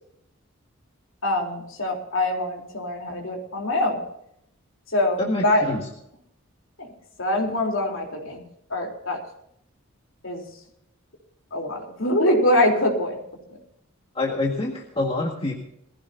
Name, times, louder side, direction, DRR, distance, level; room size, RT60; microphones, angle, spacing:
voice 1, 1.2-4.0 4.9-5.7 6.8-6.9 7.2-8.4 8.7-9.2 10.2-10.4 11.5-13.2 13.5-13.6, left 1 dB, 60° left, 0 dB, 3.7 m, -24 dB
voice 2, 5.2-5.8 14.1-15.5, left 2 dB, 25° left, -1 dB, 1.8 m, -26 dB
21.0 x 15.5 x 2.8 m, 0.74 s
head